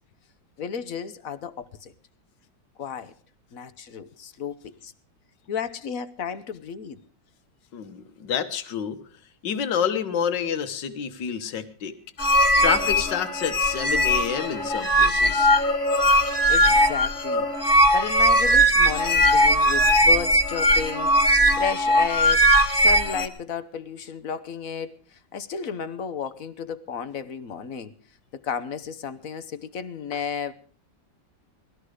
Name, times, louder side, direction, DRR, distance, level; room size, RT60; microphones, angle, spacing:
voice 1, 0.6-1.9 2.8-3.1 3.5-4.9 5.5-7.0 16.3-17.5 17.9-27.9 28.3-30.5, left 7 dB, 55° left, 1.2 m, -33 dB
voice 2, 7.7-9.0 9.4-11.9 12.6-15.5, left 8 dB, 75° left, 1.9 m, -28 dB
sound 1, 12.2-23.3, equal, 30° left, 1.4 m, -19 dB
19.5 x 13.5 x 4.9 m
omnidirectional pair, 2.0 m